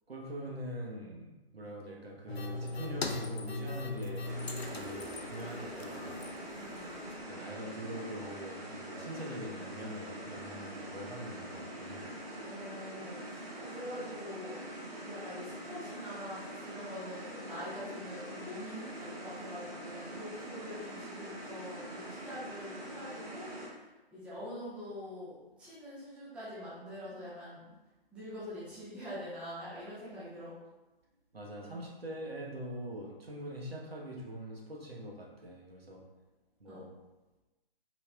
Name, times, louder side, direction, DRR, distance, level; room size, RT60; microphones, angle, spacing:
voice 1, 0.1-4.4 4.7-6.2 7.3-12.1 31.3-36.0 36.6-36.9, equal, 75° right, -2 dB, 1.1 m, -43 dB
sound 1, 2.3-7.3, left 2 dB, 85° left, 0.5 m, -40 dB
sound 2, 4.2-23.7, right 1 dB, 40° right, 1.4 m, -44 dB
voice 2, 6.6-6.9 12.4-14.6 15.0-23.9 24.1-27.6 28.1-30.5 36.7-36.8, equal, 5° right, -11 dB, 0.7 m, -45 dB
4.3 x 4.0 x 2.3 m, 1.1 s
figure-of-eight pair, 130°, 31 cm